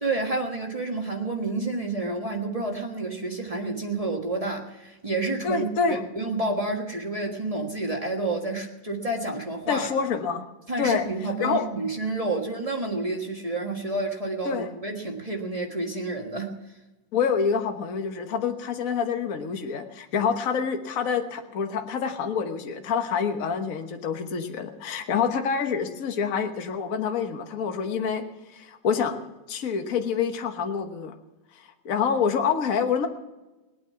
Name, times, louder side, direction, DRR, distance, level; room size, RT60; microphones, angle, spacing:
voice 1, 0.0-9.9 10.7-16.6, right 2 dB, 40° right, 0 dB, 0.5 m, -29 dB
voice 2, 5.4-6.0 9.7-10.4 10.8-11.1 11.4-11.6 14.4-14.7 17.1-28.2 28.5-29.2 29.5-31.1 31.5-33.1, left 6 dB, 80° left, 6 dB, 0.7 m, -27 dB
21.5 x 9.3 x 5.8 m, 1.1 s
omnidirectional pair, 3.5 m